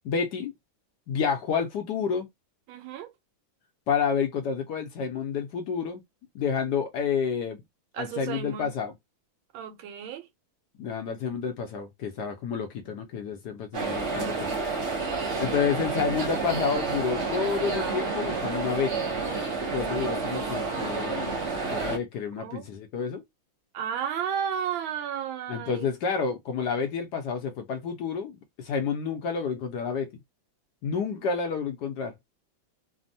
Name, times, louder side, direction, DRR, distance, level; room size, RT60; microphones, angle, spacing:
voice 1, 0.0-0.5 1.1-2.3 3.9-6.0 6.3-7.6 8.0-8.9 10.8-14.6 15.4-19.0 19.7-21.3 21.7-23.2 25.5-30.1 30.8-32.1, left 6 dB, 75° left, 1.0 m, -29 dB
voice 2, 2.7-3.1 7.9-8.7 9.5-10.3 22.4-22.7 23.7-25.9, right 8 dB, 85° right, 1.5 m, -33 dB
sound 1, 13.7-22.0, right 4 dB, 60° right, 0.7 m, -29 dB
3.4 x 2.1 x 2.6 m
omnidirectional pair, 2.2 m